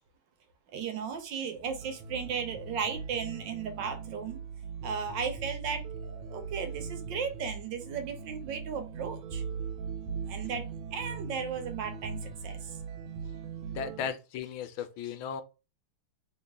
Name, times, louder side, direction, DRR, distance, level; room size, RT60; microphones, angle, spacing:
voice 1, 0.7-4.4 4.8-9.4 10.2-12.7, right 6 dB, 70° right, 1.3 m, -36 dB
sound 1, 1.6-14.1, right 5 dB, 90° right, 1.5 m, -40 dB
voice 2, 13.7-15.4, left 7 dB, 80° left, 1.4 m, -36 dB
3.1 x 2.9 x 3.4 m
omnidirectional pair, 2.2 m